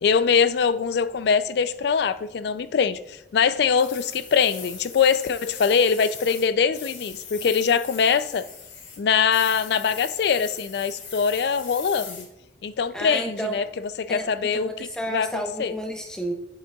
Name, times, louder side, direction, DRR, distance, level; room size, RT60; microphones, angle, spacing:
voice 1, 0.0-8.4 9.0-12.3 12.6-13.6 14.0-14.7 15.1-15.7, left 6 dB, 55° left, 0.3 m, -23 dB
sound 1, 3.8-6.5 6.7-9.0 9.3-12.2, left 6 dB, 80° left, 1.9 m, -40 dB
voice 2, 12.9-13.6 14.1-16.3, right 1 dB, 5° left, 0.9 m, -31 dB
8.6 x 7.2 x 2.3 m
head